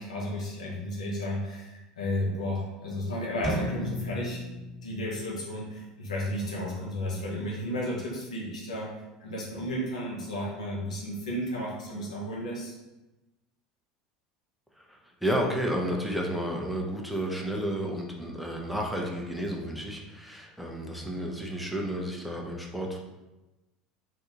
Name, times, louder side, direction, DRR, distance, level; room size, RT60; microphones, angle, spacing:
voice 1, 0.0-4.4 4.8-8.9 9.2-12.7, equal, 90° left, -3 dB, 0.9 m, -33 dB
sound 1, 3.4-5.3, equal, 15° left, 1.4 m, -34 dB
voice 2, 14.8-23.0, equal, ahead, -1 dB, 0.7 m, -32 dB
2.8 x 2.7 x 3.6 m, 1.0 s
hypercardioid pair, 80°, 4 cm